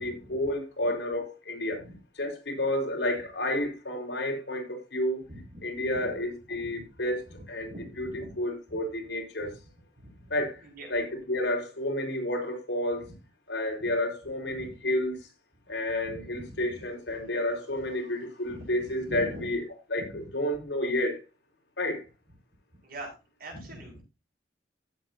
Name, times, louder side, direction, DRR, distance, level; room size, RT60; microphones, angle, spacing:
voice 1, 0.0-1.8 2.2-5.2 5.6-8.1 8.4-9.5 10.3-10.6 10.9-13.0 13.5-15.2 15.7-19.6 19.9-20.0 20.3-21.2 21.8-22.0, left 1 dB, 85° left, 4.6 m, -30 dB
voice 2, 5.3-5.6 5.9-6.1 6.6-6.9 7.3-8.4 8.7-8.8 10.0-10.3 10.6-10.9 13.8-13.9 14.5-14.8 16.0-16.9 17.2-17.3 18.5-19.5 20.0-20.3 22.8-23.1 23.4-24.0, right 1 dB, 55° right, 6.0 m, -44 dB
16.0 x 7.7 x 2.8 m
head